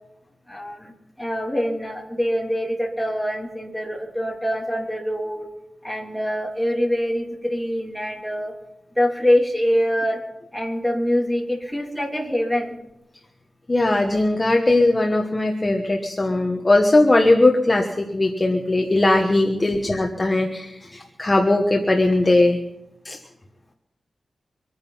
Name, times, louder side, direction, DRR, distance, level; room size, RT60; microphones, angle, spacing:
voice 1, 0.5-5.5 5.8-8.5 8.9-10.2 10.5-12.7, equal, ahead, -1 dB, 2.9 m, -24 dB
voice 2, 13.7-22.6 23.0-23.2, left 2 dB, 20° left, 2 dB, 1.2 m, -19 dB
24.5 x 9.7 x 5.7 m, 0.86 s
wide cardioid pair, 165°, 0 cm